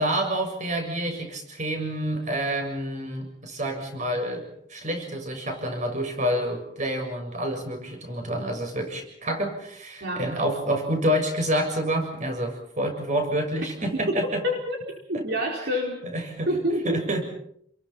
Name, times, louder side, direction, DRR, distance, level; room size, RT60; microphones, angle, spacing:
voice 1, 0.0-14.4 15.1-15.2 16.0-16.5 16.8-17.2, right 1 dB, 45° right, 4 dB, 6.9 m, -28 dB
voice 2, 14.4-14.8 15.1-16.0 16.5-17.0, equal, 65° right, -1 dB, 4.7 m, -27 dB
29.5 x 22.5 x 5.8 m, 0.68 s
head